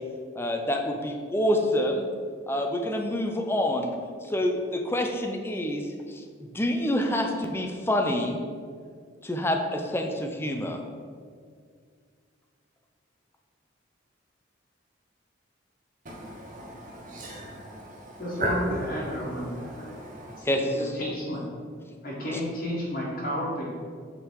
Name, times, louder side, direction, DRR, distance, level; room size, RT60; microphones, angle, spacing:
voice 1, 0.4-2.1 2.5-3.9 4.3-6.2 6.5-8.4 9.2-10.8 20.4-20.9, left 1 dB, 10° left, 3 dB, 0.5 m, -27 dB
voice 2, 16.0-20.4, equal, 45° right, -2 dB, 0.9 m, -36 dB
voice 3, 18.2-18.6 18.9-19.9 20.4-21.4 22.0-23.7, equal, 50° left, -6 dB, 1.5 m, -32 dB
8.3 x 3.9 x 4.6 m, 2.1 s
head